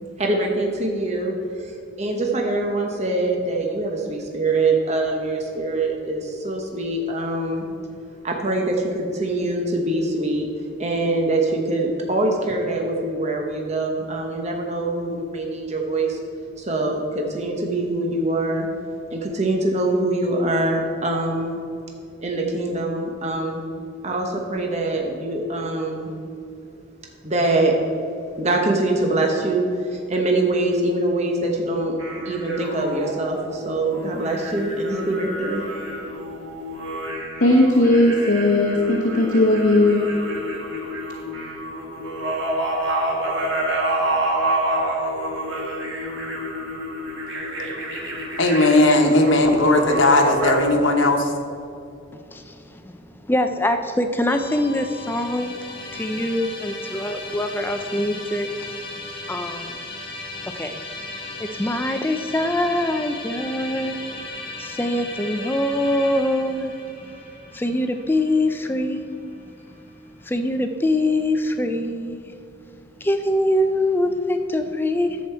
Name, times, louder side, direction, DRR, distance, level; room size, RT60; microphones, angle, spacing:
voice 1, 0.2-7.6 8.2-10.5 10.8-16.2 16.6-18.7 19.1-21.6 22.2-23.6 24.0-26.1 27.2-27.7 28.4-31.9 32.2-35.6, right 2 dB, 35° right, 1.0 m, -24 dB
sound 1, 32.0-50.5, right 1 dB, 70° right, 1.8 m, -28 dB
voice 2, 37.4-40.1, left 1 dB, 55° left, 1.0 m, -17 dB
voice 3, 48.4-51.3, left 2 dB, 80° left, 1.1 m, -17 dB
voice 4, 52.1-55.6 55.9-58.8 59.3-59.8 60.4-60.8 61.4-64.0 64.6-66.8 67.0-67.1 67.5-69.0 70.2-72.3 73.0-75.2, left 1 dB, 10° left, 0.4 m, -24 dB
Musical instrument, 54.3-69.5, left 2 dB, 30° left, 2.5 m, -36 dB
10.5 x 7.6 x 4.4 m
head